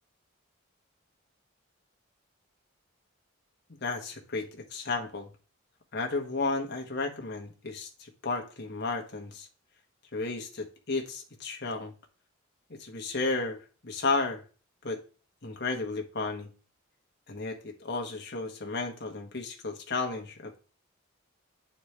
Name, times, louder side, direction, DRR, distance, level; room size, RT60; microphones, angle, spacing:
voice 1, 3.7-5.3 5.9-9.5 10.1-11.9 12.8-14.4 14.8-15.0 15.4-16.5 17.3-20.6, left 3 dB, 55° left, 2 dB, 1.2 m, -33 dB
9.1 x 4.4 x 3.3 m, 0.37 s
head